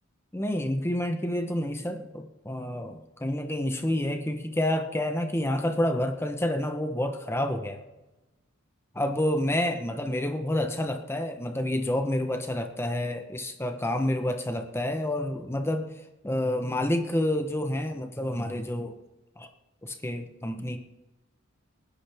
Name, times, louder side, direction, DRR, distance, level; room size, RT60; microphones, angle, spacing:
voice 1, 0.3-7.8 8.9-15.9 16.2-18.9 19.4-19.5 19.8-20.8, left 1 dB, 10° left, 5 dB, 1.0 m, -29 dB
25.0 x 10.0 x 3.5 m, 1.1 s
head